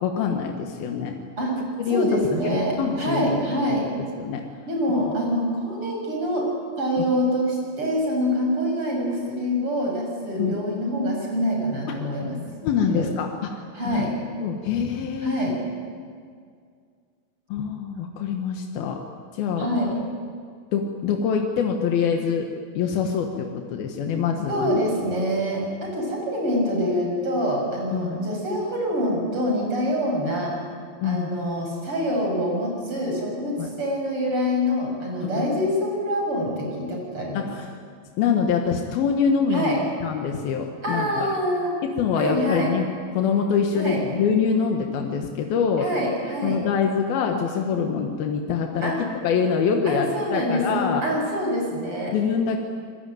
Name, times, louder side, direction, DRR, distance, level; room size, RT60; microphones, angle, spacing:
voice 1, 0.0-1.2 1.8-2.1 2.4-3.4 4.0-4.4 10.4-10.6 11.9-12.0 12.6-13.5 13.9-14.1 14.4-15.5 17.5-19.0 19.3-19.7 20.7-22.5 22.8-24.8 27.9-28.2 31.0-31.3 33.6-33.7 35.4-35.5 37.4-37.7 38.2-41.3 41.8-42.9 43.1-45.9 46.4-51.0 52.1-52.6, left 6 dB, 90° left, 3 dB, 3.4 m, -25 dB
voice 2, 1.9-3.8 4.7-6.5 6.8-12.4 12.9-13.1 13.7-14.1 15.2-15.6 19.6-19.9 24.5-30.5 31.0-37.5 39.5-39.8 40.8-41.7 42.2-42.7 43.7-44.0 45.8-46.6 48.8-49.0 49.9-52.1, equal, 35° right, -1 dB, 7.8 m, -25 dB
28.0 x 21.0 x 9.3 m, 2.1 s
omnidirectional pair, 4.1 m